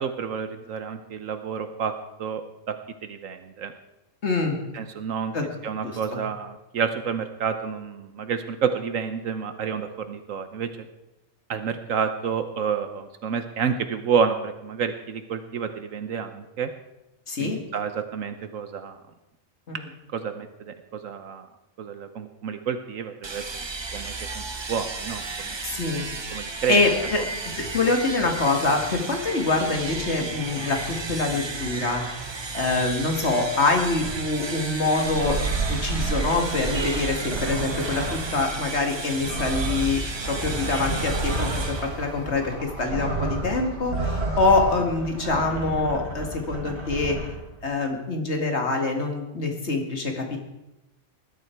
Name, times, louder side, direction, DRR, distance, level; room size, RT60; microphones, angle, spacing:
voice 1, 0.0-1.9 2.2-2.8 3.0-3.7 4.7-5.3 5.6-10.9 11.5-16.7 17.4-19.0 20.1-21.5 21.8-23.4 23.9-25.6 26.3-26.8 27.2-27.3, right 6 dB, 75° right, 9 dB, 1.2 m, -29 dB
voice 2, 4.2-4.6 5.3-5.5 5.8-5.9 17.3-17.6 19.7-19.8 25.6-26.1 26.7-27.2 27.6-35.4 35.7-47.2 47.6-50.4, left 3 dB, 55° left, 3 dB, 2.4 m, -25 dB
sound 1, 23.2-42.7, right 3 dB, 25° right, 0.7 m, -34 dB
sound 2, 34.0-34.3 35.0-38.5 39.0-47.5, right 3 dB, 55° right, 2.4 m, -30 dB
20.5 x 12.0 x 4.6 m, 0.94 s
omnidirectional pair, 1.4 m